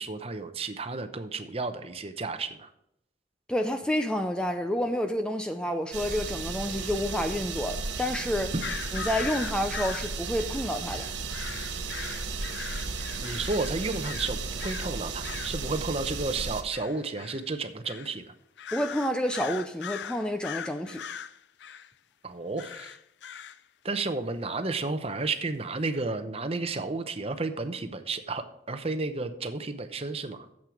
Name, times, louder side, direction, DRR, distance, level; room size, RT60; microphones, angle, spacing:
voice 1, 0.0-2.7 13.2-18.3 22.2-23.0 23.8-30.5, right 3 dB, 30° right, 0.7 m, -32 dB
voice 2, 3.5-8.5 8.9-11.1 18.7-21.0, equal, 5° left, 0.4 m, -29 dB
sound 1, 5.9-16.6, right 4 dB, 80° right, 1.1 m, -34 dB
sound 2, 8.6-14.9 15.2-15.6 16.7-17.5 17.9-18.1 18.6-21.9 22.6-23.6, left 8 dB, 70° left, 0.4 m, -40 dB
9.1 x 7.5 x 4.9 m
head